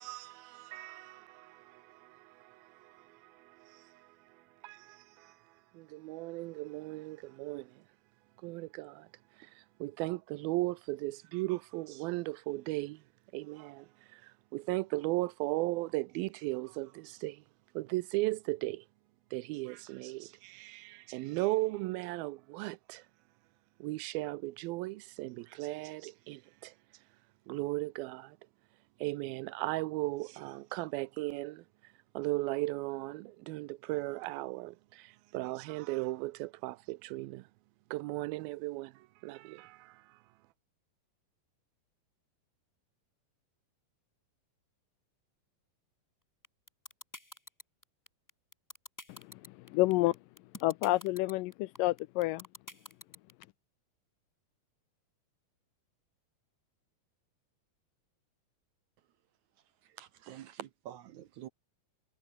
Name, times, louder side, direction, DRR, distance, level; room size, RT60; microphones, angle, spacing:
voice 1, 0.0-7.9 8.4-18.9 19.3-23.1 23.8-28.5 29.0-37.5 37.9-40.5, right 20 dB, 85° right, 2.5 m, -37 dB
sound 1, 46.4-53.4, left 1 dB, 15° left, 0.6 m, -47 dB
voice 2, 49.1-50.2 50.6-52.5, left 19 dB, 80° left, 2.0 m, -30 dB
voice 3, 60.0-61.5, right 11 dB, 70° right, 2.0 m, -47 dB
omnidirectional pair, 4.2 m